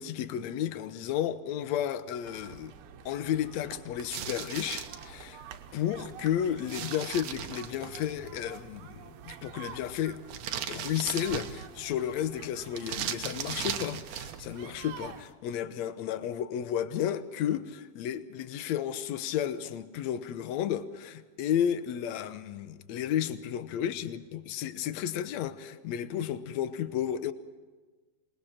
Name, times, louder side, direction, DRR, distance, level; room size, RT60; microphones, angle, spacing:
voice 1, 0.0-2.7 3.0-5.4 5.7-10.2 10.7-27.3, left 10 dB, 70° left, 1.7 m, -32 dB
sound 1, 2.2-15.2, right 8 dB, 90° right, 3.1 m, -48 dB
sound 2, 4.1-5.0 6.7-8.1 10.3-11.8 12.7-14.4, right 10 dB, 65° right, 2.1 m, -37 dB
26.5 x 21.0 x 5.8 m
omnidirectional pair, 4.2 m